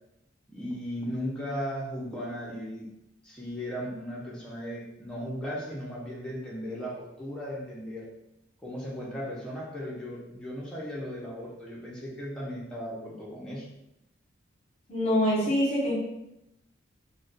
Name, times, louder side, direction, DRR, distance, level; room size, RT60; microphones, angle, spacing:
voice 1, 0.5-2.9 3.2-8.1 8.6-13.7, equal, 5° left, -6 dB, 0.5 m, -36 dB
voice 2, 14.9-16.0, equal, 30° left, -5 dB, 0.8 m, -25 dB
2.3 x 2.1 x 3.8 m, 0.87 s
head